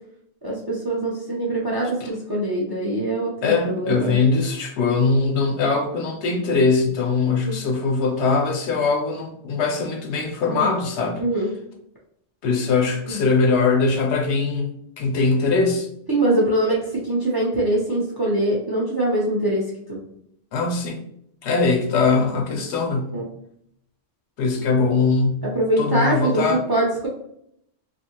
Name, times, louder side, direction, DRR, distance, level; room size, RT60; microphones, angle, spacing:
voice 1, 0.4-4.2 7.3-7.6 10.5-10.7 11.2-11.5 13.1-13.2 16.1-20.0 23.1-23.2 25.4-27.1, right 1 dB, 30° right, -3 dB, 0.4 m, -23 dB
voice 2, 3.4-11.2 12.4-14.7 15.0-15.9 20.5-21.0 21.4-23.2 24.4-25.5 25.8-26.6, left 4 dB, 80° left, 2 dB, 0.9 m, -21 dB
2.6 x 2.5 x 2.8 m, 0.71 s
omnidirectional pair, 1.1 m